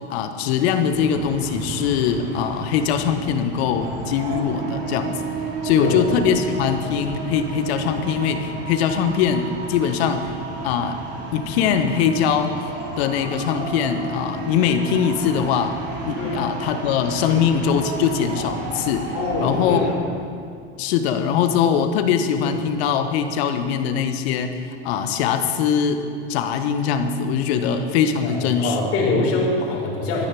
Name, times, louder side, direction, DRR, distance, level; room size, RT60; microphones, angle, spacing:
voice 1, 0.1-5.3 5.6-10.3 10.6-11.0 11.3-12.5 13.0-15.8 16.0-19.1 19.4-19.9 20.8-28.9, left 7 dB, 65° left, 8 dB, 1.4 m, -22 dB
sound 1, 0.9-19.9, right 3 dB, 45° right, 3.8 m, -32 dB
voice 2, 19.1-20.0 22.4-22.5 27.5-30.3, left 3 dB, 40° left, -3 dB, 4.1 m, -25 dB
13.5 x 10.0 x 6.1 m, 2.3 s
hypercardioid pair, 90°, 34 cm